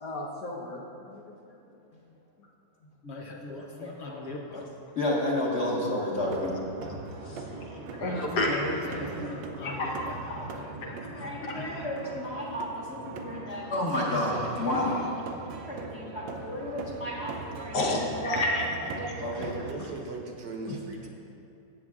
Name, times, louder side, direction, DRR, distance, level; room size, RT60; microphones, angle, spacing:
voice 1, 0.0-0.8 1.1-1.2 7.2-8.6 9.6-10.4 11.1-11.8 14.8-14.9 17.7-18.8 19.3-19.5 20.7-20.8, left 2 dB, 65° left, -1 dB, 1.5 m, -32 dB
voice 2, 2.8-4.6 8.0-11.0, left 2 dB, 85° left, -1 dB, 0.5 m, -40 dB
voice 3, 3.8-4.2 5.0-6.5 7.7-8.2 11.2-15.0 15.7-17.9 18.2-18.4 19.0-19.6, left 1 dB, 40° left, -4 dB, 1.6 m, -31 dB
sound 1, 6.2-19.7, right 4 dB, 90° right, 1.4 m, -41 dB
voice 4, 7.2-7.6 8.1-9.5 19.6-21.1, right 3 dB, 70° right, 1 dB, 1.5 m, -40 dB
14.0 x 7.6 x 2.4 m, 2.8 s
omnidirectional pair, 2.0 m